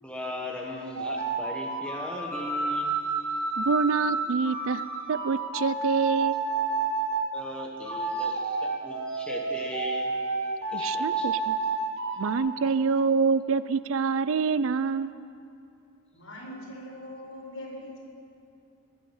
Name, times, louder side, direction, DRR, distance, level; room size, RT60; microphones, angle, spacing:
voice 1, 0.0-2.9 7.3-10.1 10.7-11.3, left 1 dB, 5° left, -1 dB, 1.5 m, -38 dB
sound 1, 0.9-7.3 7.8-12.4, right 3 dB, 90° right, 1.5 m, -30 dB
voice 2, 3.6-4.8 5.1-6.4 10.7-11.6 12.2-15.1, right 5 dB, 75° right, 15 dB, 0.5 m, -26 dB
voice 3, 16.1-18.0, left 1 dB, 80° left, -3 dB, 4.8 m, -41 dB
21.0 x 9.0 x 7.2 m, 2.6 s
head